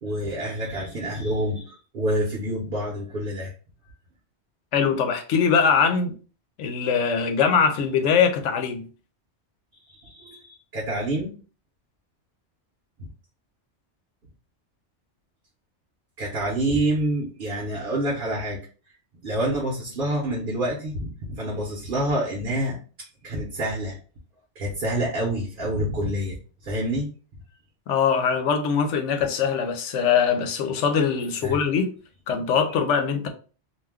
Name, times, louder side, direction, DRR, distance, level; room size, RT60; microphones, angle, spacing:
voice 1, 0.0-3.5 9.9-11.3 13.0-13.1 16.2-18.6 19.2-22.8 23.2-24.0 24.6-26.4 26.6-27.1 31.4-31.6, right 1 dB, 50° right, 0.9 m, -27 dB
voice 2, 4.7-6.2 6.6-8.9 27.9-31.9 32.3-33.3, left 6 dB, 90° left, 0.9 m, -22 dB
2.5 x 2.2 x 3.4 m
omnidirectional pair, 1.2 m